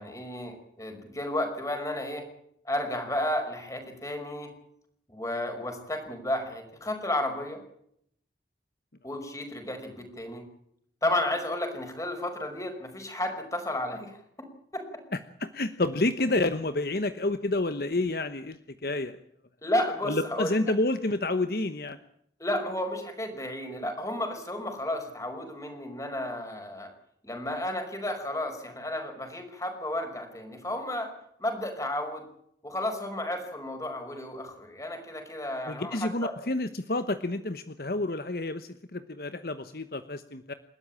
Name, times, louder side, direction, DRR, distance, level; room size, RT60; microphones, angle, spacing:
voice 1, 0.0-2.2 2.7-4.5 5.1-7.6 9.0-10.4 11.0-14.2 14.7-14.8 19.6-20.5 22.4-26.9 27.2-31.1 31.4-32.2 32.6-36.3, left 1 dB, 20° left, 5 dB, 5.4 m, -32 dB
voice 2, 15.4-19.2 20.0-22.0 35.7-40.5, left 2 dB, 55° left, 11 dB, 1.1 m, -29 dB
29.0 x 13.0 x 8.7 m, 0.71 s
head